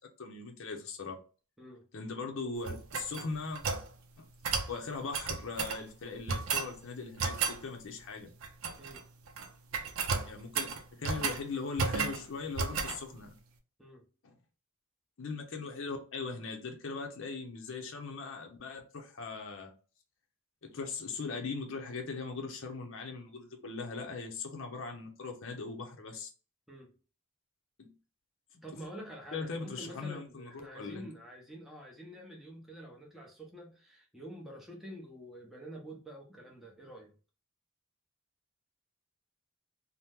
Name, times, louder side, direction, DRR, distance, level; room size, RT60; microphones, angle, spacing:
voice 1, 0.2-1.2 1.9-3.6 4.2-8.3 10.2-13.4 14.2-14.3 15.2-19.7 20.6-26.3 27.8-27.9 28.5-28.6 29.3-31.1, left 4 dB, 60° left, 0.6 m, -40 dB
sound 1, 2.6-3.9 4.4-4.7 5.1-5.8 6.3-6.7 7.2-7.6 8.4-9.0 9.3-9.5 9.7-11.4 11.8-12.2 12.6-13.0, right 5 dB, 65° right, 0.5 m, -33 dB
voice 2, 28.6-37.2, right 1 dB, ahead, 0.7 m, -47 dB
2.8 x 2.1 x 3.4 m
head